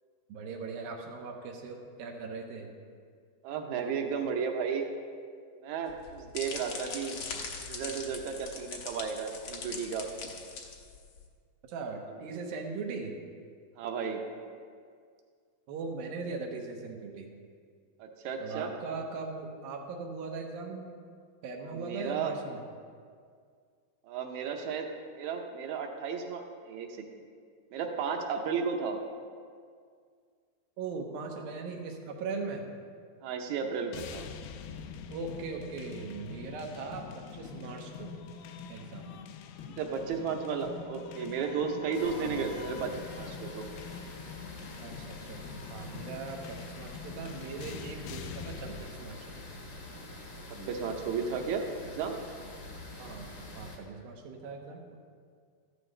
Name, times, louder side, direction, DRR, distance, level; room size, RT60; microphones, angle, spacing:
voice 1, 0.3-2.7 11.7-13.1 15.7-17.3 18.4-20.9 21.4-22.6 30.8-32.6 35.1-38.1 38.7-39.1 42.2-42.6 44.8-49.2 53.0-54.9, right 4 dB, 90° right, 2 dB, 2.8 m, -39 dB
voice 2, 3.4-4.9 5.6-7.2 7.7-10.1 13.8-14.2 18.0-18.7 21.7-22.3 24.0-24.9 25.1-27.0 27.7-29.0 33.2-34.3 39.8-43.7 50.5-52.2, right 6 dB, 75° right, 3 dB, 1.8 m, -34 dB
sound 1, 5.9-11.2, left 4 dB, 65° left, 1.4 m, -41 dB
sound 2, 33.9-48.9, left 6 dB, 90° left, 2.4 m, -45 dB
sound 3, 41.9-53.8, left 2 dB, 50° left, 1.2 m, -46 dB
14.0 x 11.5 x 3.3 m, 2.1 s
omnidirectional pair, 4.1 m